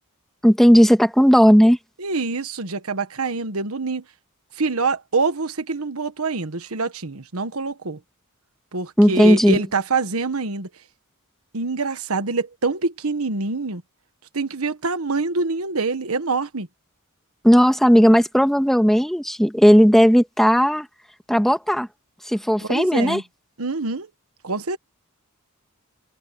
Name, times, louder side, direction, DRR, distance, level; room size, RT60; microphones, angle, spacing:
voice 1, 0.4-1.8 9.0-9.6 17.4-20.9 21.3-21.9 22.3-23.2, equal, ahead, 1.8 m, -15 dB
voice 2, 2.0-4.0 4.6-8.0 8.7-10.7 11.5-13.8 14.3-16.7 22.6-23.2 23.6-24.1 24.4-24.8, right 3 dB, 75° right, 1.4 m, -25 dB
head